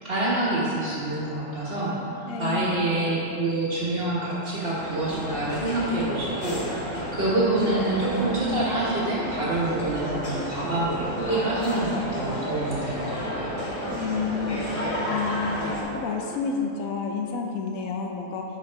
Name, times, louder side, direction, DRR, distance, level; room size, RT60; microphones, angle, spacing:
voice 1, 0.0-13.6, right 2 dB, 45° right, -7 dB, 1.5 m, -27 dB
voice 2, 2.2-2.7 13.9-14.6 15.1-18.4, left 5 dB, 90° left, 1 dB, 1.0 m, -30 dB
sound 1, 2.9-3.7 4.2-16.4, right 2 dB, 70° right, 1.3 m, -41 dB
sound 2, 4.8-15.8, left 1 dB, 30° left, 0.9 m, -32 dB
6.4 x 4.9 x 4.6 m, 2.7 s
omnidirectional pair, 1.4 m